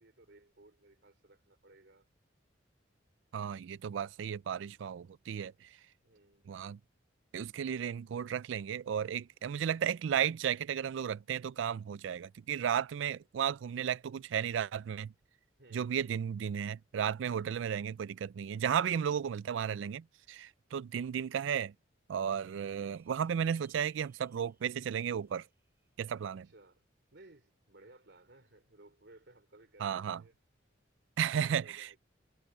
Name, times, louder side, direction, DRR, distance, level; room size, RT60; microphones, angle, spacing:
voice 1, 0.0-2.1 6.0-6.5 15.6-16.0 17.3-17.6 26.4-26.8 27.1-30.3 31.3-32.0, right 2 dB, 60° right, 3.5 m, -59 dB
voice 2, 3.3-5.7 6.5-6.8 7.3-15.1 15.7-21.7 22.1-25.4 26.0-26.5 29.8-30.2 31.2-32.0, right 8 dB, 80° right, 0.3 m, -34 dB
sound 1, 22.9-27.7, right 3 dB, 10° right, 6.3 m, -73 dB
head